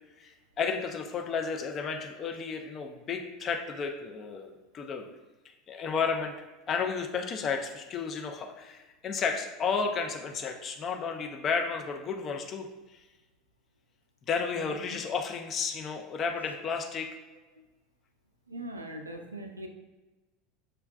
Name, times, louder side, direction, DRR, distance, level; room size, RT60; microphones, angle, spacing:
voice 1, 0.2-5.1 5.7-6.3 6.7-12.7 14.3-17.1, left 5 dB, 35° left, 3 dB, 0.5 m, -32 dB
voice 2, 18.5-19.7, right 1 dB, 90° right, 4 dB, 0.4 m, -40 dB
6.2 x 2.2 x 2.3 m, 1.1 s
figure-of-eight pair, 75°, 0 cm